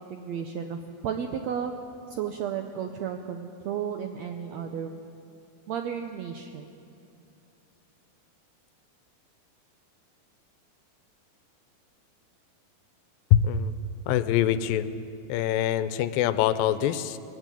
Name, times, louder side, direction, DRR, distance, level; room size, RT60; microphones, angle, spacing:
voice 1, 0.0-1.7 2.1-5.1 5.7-6.7, right 8 dB, 80° right, 5 dB, 1.6 m, -33 dB
voice 2, 13.3-13.7 14.1-14.8 15.3-17.2, left 10 dB, 80° left, 13 dB, 2.4 m, -24 dB
20.0 x 15.5 x 9.1 m, 2.6 s
omnidirectional pair, 4.1 m